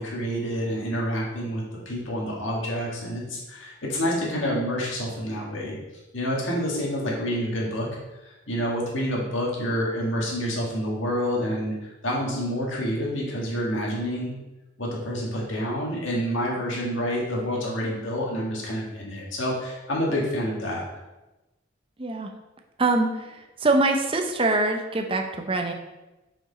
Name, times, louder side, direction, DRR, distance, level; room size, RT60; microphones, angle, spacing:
voice 1, 0.0-5.8 6.1-7.9 8.3-14.3 14.8-20.8, equal, 70° left, -3 dB, 1.8 m, -28 dB
voice 2, 22.0-22.3 22.8-23.3 23.6-25.7, right 2 dB, 25° right, 4 dB, 0.6 m, -23 dB
6.1 x 4.6 x 4.1 m, 1.0 s
head